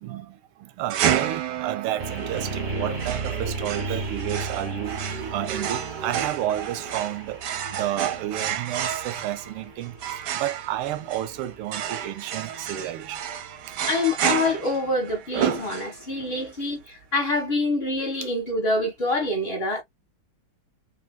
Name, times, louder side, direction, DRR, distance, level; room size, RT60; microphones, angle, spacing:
voice 1, 0.0-7.4 7.7-13.2 13.7-13.8 15.9-16.5 18.5-18.6, right 12 dB, 85° right, 1.5 m, -31 dB
sound 1, 0.9-16.2, right 9 dB, 70° right, 1.0 m, -31 dB
sound 2, 2.0-13.9, right 3 dB, 35° right, 0.7 m, -35 dB
voice 2, 13.9-19.8, left 2 dB, 35° left, 1.2 m, -26 dB
3.4 x 2.7 x 2.2 m
omnidirectional pair, 2.3 m